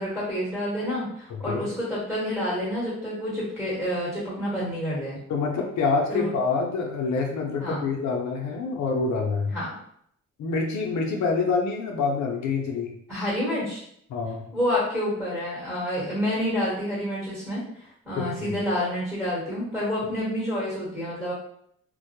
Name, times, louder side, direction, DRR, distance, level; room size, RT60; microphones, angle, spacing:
voice 1, 0.0-5.2 6.1-6.3 7.6-7.8 9.5-9.8 13.1-13.8 14.5-17.6 18.0-21.3, equal, ahead, -8 dB, 1.1 m, -28 dB
voice 2, 5.3-9.5 10.4-13.0 14.1-14.5 18.2-18.5, left 4 dB, 65° left, 1 dB, 0.5 m, -26 dB
2.1 x 2.0 x 2.8 m, 0.69 s
cardioid pair, 90°, 30 cm